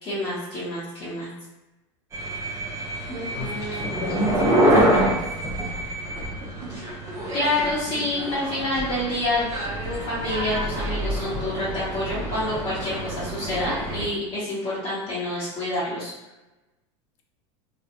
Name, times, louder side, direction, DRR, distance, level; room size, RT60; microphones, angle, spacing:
voice 1, 0.0-1.3 3.1-3.9 6.7-6.9 7.3-9.5 9.8-16.1, left 1 dB, 30° left, -11 dB, 0.9 m, -28 dB
sound 1, 2.1-14.0, right 1 dB, 20° right, 0.8 m, -26 dB
voice 2, 3.3-5.1, left 3 dB, 50° left, 1 dB, 0.6 m, -35 dB
2.7 x 2.3 x 2.6 m, 1.0 s
supercardioid pair, 110°, 16 cm